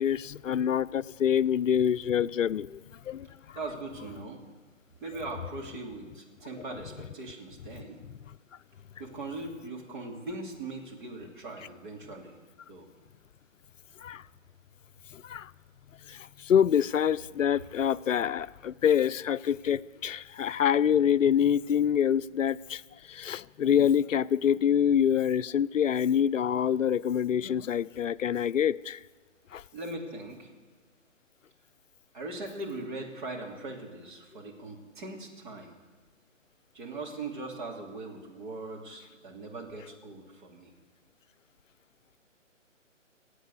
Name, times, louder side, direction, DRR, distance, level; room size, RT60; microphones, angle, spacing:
voice 1, 0.0-2.8 3.1-3.6 6.7-6.8 14.0-14.2 15.1-15.5 16.1-22.8 23.1-29.0 29.5-29.6, left 9 dB, 75° left, 0.5 m, -26 dB
voice 2, 3.5-4.4 5.0-8.0 9.0-12.3 12.7-12.9 29.7-30.5 32.1-35.8 36.7-40.7, right 2 dB, 40° right, 2.8 m, -40 dB
17.5 x 8.2 x 8.4 m
figure-of-eight pair, 150°, 39 cm